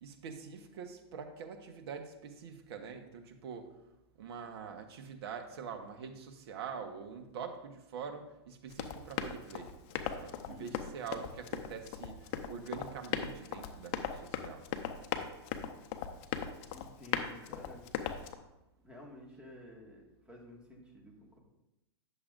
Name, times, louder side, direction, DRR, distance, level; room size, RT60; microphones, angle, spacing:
voice 1, 0.0-3.7 4.2-9.7 10.1-14.6, right 6 dB, 65° right, 5 dB, 1.1 m, -45 dB
Run, 8.7-18.3, left 9 dB, 45° left, 0.7 m, -39 dB
voice 2, 10.5-10.9 16.7-17.9 18.8-21.4, left 2 dB, 5° right, -2 dB, 1.8 m, -52 dB
10.0 x 6.9 x 2.5 m, 0.94 s
hypercardioid pair, 125°, 14 cm